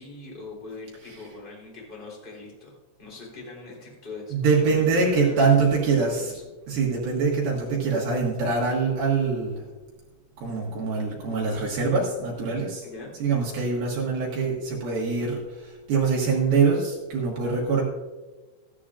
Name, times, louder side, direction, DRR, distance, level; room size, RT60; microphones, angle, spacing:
voice 1, 0.0-4.3 4.6-5.5 5.8-6.4 12.8-13.1, left 3 dB, 15° left, -4 dB, 2.6 m, -42 dB
voice 2, 4.3-6.3 6.7-9.6 10.4-12.9 13.2-17.8, right 4 dB, 60° right, -3 dB, 2.8 m, -24 dB
14.5 x 11.5 x 2.5 m, 1.2 s
omnidirectional pair, 6.0 m